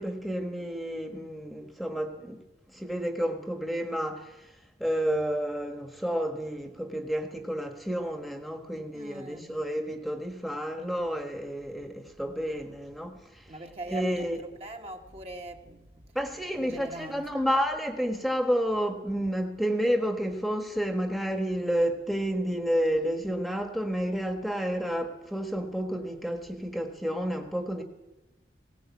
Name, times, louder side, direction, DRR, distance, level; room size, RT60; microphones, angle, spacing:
voice 1, 0.0-2.4 2.7-4.4 4.8-13.4 13.9-14.4 16.1-27.8, equal, ahead, 1.4 m, -30 dB
voice 2, 8.9-9.5 13.5-16.1 16.6-17.3 25.7-25.8, right 1 dB, 35° right, 1.8 m, -42 dB
19.0 x 17.5 x 8.4 m
head